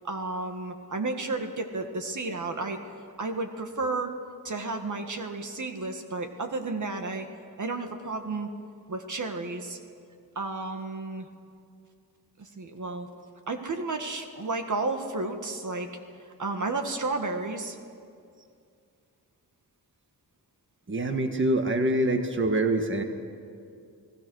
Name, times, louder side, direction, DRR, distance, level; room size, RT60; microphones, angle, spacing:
voice 1, 0.0-2.8 3.2-4.2 4.4-7.3 7.6-8.5 8.9-9.8 10.4-11.3 12.4-13.1 13.5-15.9 16.4-17.8, right 3 dB, 55° right, 5 dB, 1.8 m, -32 dB
voice 2, 20.9-23.0, right 1 dB, 30° right, 5 dB, 1.6 m, -25 dB
29.0 x 18.5 x 6.4 m, 2.4 s
wide cardioid pair, 115°, 37 cm